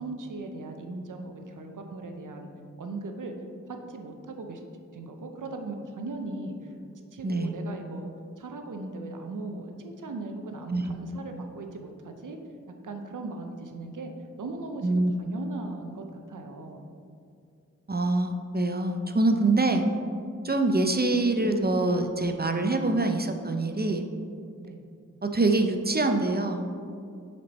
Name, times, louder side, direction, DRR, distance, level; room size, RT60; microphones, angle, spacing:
voice 1, 0.0-2.5 2.8-3.3 3.7-4.6 4.9-6.6 7.1-12.4 12.8-14.1 14.4-16.8 22.9-23.4 24.6-24.9, right 2 dB, 85° right, 4 dB, 0.6 m, -38 dB
voice 2, 7.2-7.6 10.7-10.9 14.8-15.1 17.9-19.8 20.4-24.0 25.2-26.7, right 2 dB, 30° right, 5 dB, 0.5 m, -25 dB
6.2 x 4.4 x 4.1 m, 2.4 s
cardioid pair, 40°, 30 cm